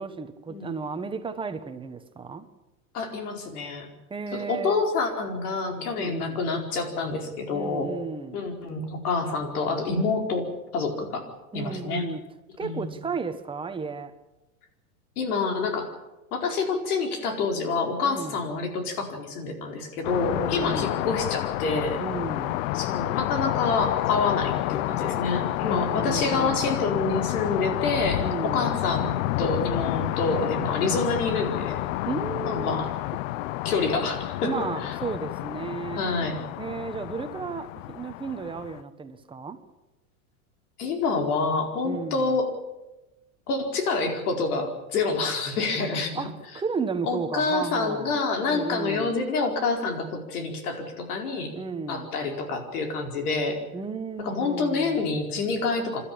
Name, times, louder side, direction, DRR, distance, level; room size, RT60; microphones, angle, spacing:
voice 1, 0.0-2.5 4.1-4.8 5.9-6.4 7.5-8.4 11.5-12.2 12.6-14.1 18.0-18.4 20.3-21.0 22.0-22.6 25.6-26.8 28.1-28.8 32.0-32.9 34.4-36.0 36.6-39.6 41.8-42.4 46.1-48.1 48.4-49.1 51.5-52.1 53.7-55.1, right 5 dB, 10° right, 1.3 m, -34 dB
voice 2, 2.9-3.9 4.3-8.0 8.3-12.1 12.6-13.0 15.2-16.0 16.3-22.0 22.7-31.9 32.4-33.0 33.6-35.0 35.9-36.4 40.8-42.5 43.5-46.3 47.0-51.5 51.9-53.6 54.2-56.0, left 4 dB, 80° left, 4.8 m, -27 dB
sound 1, 20.0-38.8, left 17 dB, 60° left, 0.7 m, -29 dB
28.0 x 12.5 x 8.8 m
supercardioid pair, 140°, 44 cm